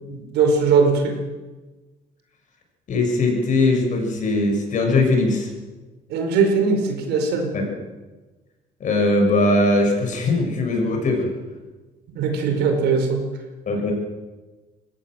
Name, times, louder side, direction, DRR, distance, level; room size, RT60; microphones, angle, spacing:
voice 1, 0.1-1.1 6.1-7.5 12.1-13.2, right 4 dB, 80° right, 4 dB, 4.9 m, -20 dB
voice 2, 2.9-5.5 7.5-7.7 8.8-11.3 13.7-13.9, left 2 dB, 50° left, 2 dB, 6.6 m, -20 dB
21.5 x 16.5 x 7.7 m, 1.2 s
cardioid pair, 110°, 17 cm